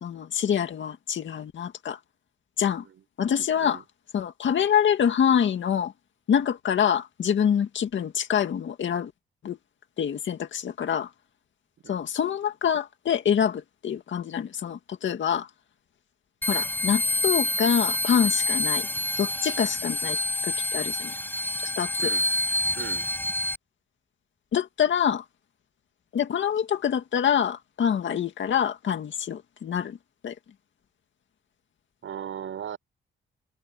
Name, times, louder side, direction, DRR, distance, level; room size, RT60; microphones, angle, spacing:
voice 1, 0.0-2.0 2.6-2.8 3.2-3.8 4.1-5.9 6.3-9.1 9.4-9.6 10.0-11.1 11.9-15.5 16.5-18.9 19.2-20.2 20.4-21.1 21.8-22.1 24.5-25.2 26.1-30.0 30.2-30.3, left 8 dB, 65° left, 2.1 m, -25 dB
sound 1, 16.4-23.6, left 1 dB, 10° left, 6.5 m, -27 dB
voice 2, 32.0-32.8, right 9 dB, 75° right, 5.9 m, -38 dB
cardioid pair, 95°, 21 cm